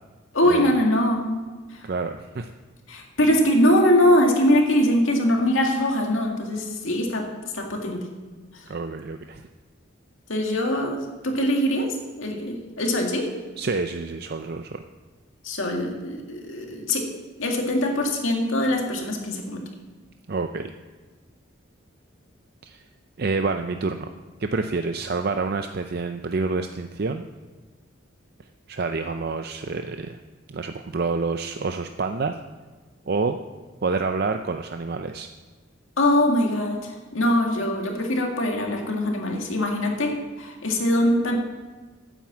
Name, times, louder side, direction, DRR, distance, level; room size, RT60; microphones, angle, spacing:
voice 1, 0.3-1.3 1.7-1.8 2.9-7.3 7.5-8.0 8.5-8.6 10.3-13.3 15.4-17.1 17.4-19.6 36.0-41.3, left 1 dB, 75° left, 1 dB, 2.1 m, -22 dB
voice 2, 1.8-2.5 8.7-9.4 13.6-14.8 20.3-20.7 22.6-22.8 23.2-24.1 24.4-27.2 28.7-30.2 30.5-32.4 33.1-33.4 33.8-35.3, right 4 dB, 50° right, 7 dB, 0.5 m, -28 dB
9.4 x 9.2 x 7.4 m, 1.3 s
head